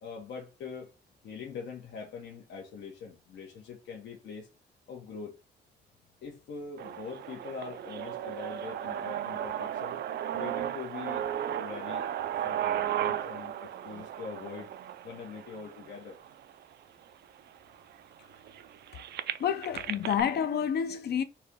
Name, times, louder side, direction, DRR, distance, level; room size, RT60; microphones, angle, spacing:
voice 1, 0.0-0.9 1.2-4.5 4.9-5.3 6.2-10.0 10.3-11.3 11.6-12.1 12.4-14.7 15.0-16.2, left 5 dB, 85° left, 1.2 m, -43 dB
sound 1, 6.8-16.7 17.4-17.5 17.7-20.2, right 11 dB, 70° right, 0.4 m, -35 dB
voice 2, 19.4-21.2, left 8 dB, 65° left, 0.6 m, -29 dB
4.5 x 3.0 x 3.6 m
cardioid pair, 125°, 18 cm